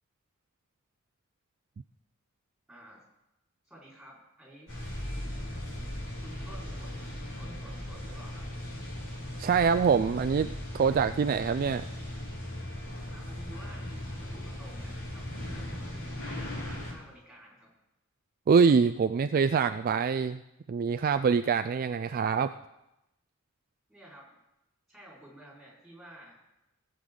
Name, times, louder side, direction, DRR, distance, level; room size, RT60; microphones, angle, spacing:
voice 1, 2.7-3.0 3.6-4.7 6.2-8.4 13.1-17.7 23.9-24.3 24.9-26.4, right 1 dB, ahead, -5 dB, 4.7 m, -52 dB
sound 1, 4.7-16.9, left 1 dB, 80° left, 4.7 m, -38 dB
voice 2, 9.4-11.9 18.5-20.4 20.7-22.5, right 6 dB, 45° right, 10 dB, 0.3 m, -25 dB
18.0 x 8.0 x 3.8 m, 0.91 s
head